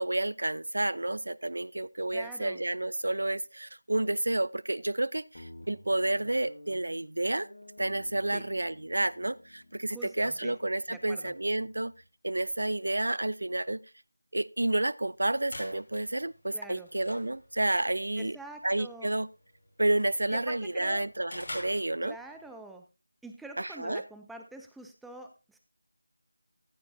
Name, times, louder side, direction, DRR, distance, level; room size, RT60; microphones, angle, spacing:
voice 1, 0.0-7.5 7.8-11.9 12.2-13.8 14.3-18.4 18.6-19.3 19.8-22.2 23.6-24.0, right 1 dB, 75° right, 21 dB, 0.6 m, -30 dB
voice 2, 2.1-2.6 8.3-8.4 9.9-10.5 10.9-11.3 16.5-16.9 18.2-19.2 20.3-21.1 22.0-22.8 23.2-25.6, right 2 dB, ahead, 4 dB, 0.5 m, -46 dB
Guitar, 5.3-12.0, left 1 dB, 75° left, 2.9 m, -53 dB
sound 1, 15.1-22.5, left 1 dB, 45° left, 5.5 m, -48 dB
14.5 x 10.5 x 2.7 m, 0.27 s
figure-of-eight pair, 170°, 0 cm